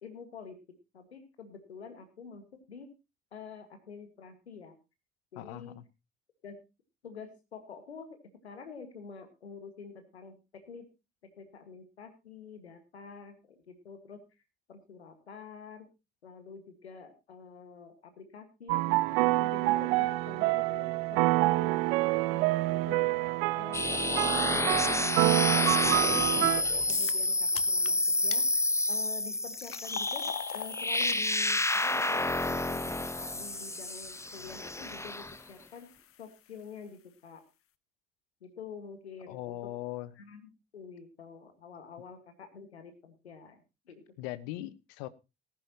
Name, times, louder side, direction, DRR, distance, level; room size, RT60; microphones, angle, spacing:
voice 1, 0.0-2.9 3.3-4.8 5.3-5.8 6.4-6.6 7.0-8.2 8.4-10.9 11.2-14.2 14.7-15.9 16.2-21.9 22.3-23.0 23.6-25.4 25.8-28.5 28.9-35.9 36.2-37.4 38.4-39.7 40.2-44.0, left 6 dB, 85° left, 9 dB, 1.8 m, -47 dB
voice 2, 5.4-5.8 39.3-40.1 44.2-45.1, left 15 dB, 70° left, 17 dB, 1.0 m, -39 dB
sound 1, 18.7-26.6, right 20 dB, 70° right, 0.6 m, -27 dB
sound 2, 23.7-35.4, left 2 dB, 10° left, 0.9 m, -29 dB
sound 3, 26.9-27.3 27.6-27.9 28.3-28.4 29.1-36.2, left 11 dB, 45° left, 0.8 m, -44 dB
18.5 x 10.5 x 2.9 m, 0.27 s
figure-of-eight pair, 45°, 32 cm